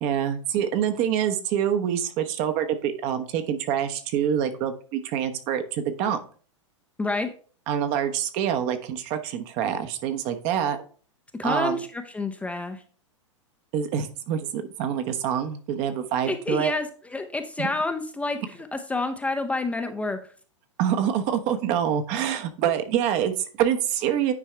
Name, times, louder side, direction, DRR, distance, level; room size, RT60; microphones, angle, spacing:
voice 1, 0.0-6.2 7.7-10.8 11.4-11.8 13.7-16.7 17.6-17.7 20.8-24.3, right 9 dB, 45° right, 8 dB, 1.0 m, -26 dB
voice 2, 7.0-7.3 11.4-12.8 16.3-20.2, left 2 dB, 10° left, 6 dB, 0.6 m, -29 dB
9.6 x 4.6 x 3.3 m, 0.42 s
hypercardioid pair, 110°, 16 cm